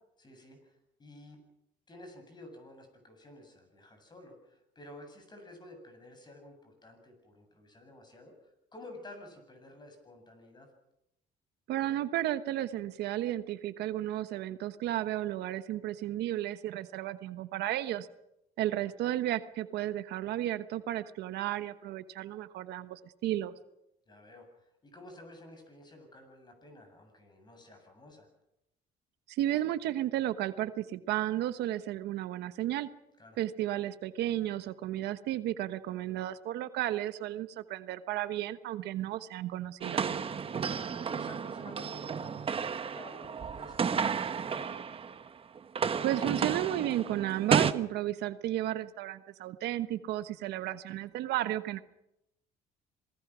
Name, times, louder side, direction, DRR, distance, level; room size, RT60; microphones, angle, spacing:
voice 1, 0.2-1.4 1.9-8.3 8.7-10.7 24.1-28.3 33.2-33.4 40.9-44.8, left 1 dB, 25° left, 5 dB, 7.8 m, -52 dB
voice 2, 11.7-18.1 18.6-23.5 29.3-32.9 33.4-40.0 46.0-51.8, right 13 dB, 80° right, 12 dB, 1.2 m, -33 dB
sound 1, 39.8-45.3 45.6-47.7, right 6 dB, 35° right, 1.1 m, -32 dB
27.0 x 19.5 x 6.2 m, 0.84 s
cardioid pair, 110°, 17 cm